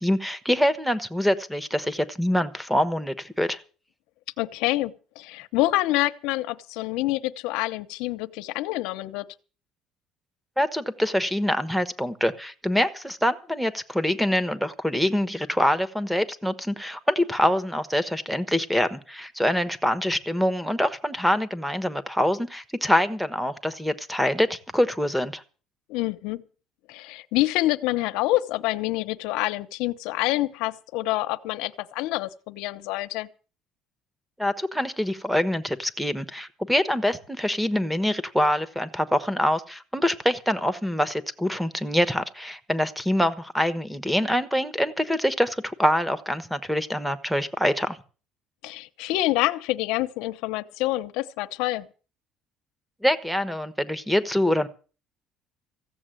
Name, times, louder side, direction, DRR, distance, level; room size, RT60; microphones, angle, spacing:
voice 1, 0.0-3.6 10.6-25.4 34.4-48.0 53.0-54.7, equal, ahead, 1.1 m, -25 dB
voice 2, 4.4-9.3 25.9-26.4 26.9-33.3 48.6-51.9, left 17 dB, 90° left, 0.9 m, -27 dB
15.5 x 7.3 x 9.0 m
cardioid pair, 130°, 0 cm